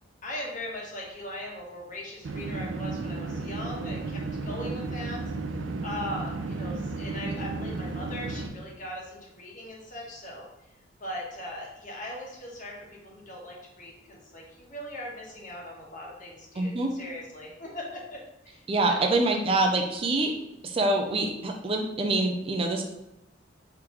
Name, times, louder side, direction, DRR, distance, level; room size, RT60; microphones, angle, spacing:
voice 1, 0.2-5.2 5.8-10.5 11.0-19.1, left 1 dB, 45° left, -2 dB, 1.2 m, -39 dB
sound 1, 2.2-8.5, right 3 dB, 85° right, 0.5 m, -33 dB
voice 2, 16.6-16.9 18.7-20.3 20.6-22.8, right 2 dB, 30° right, 3 dB, 0.4 m, -25 dB
3.6 x 3.0 x 4.8 m, 0.89 s
head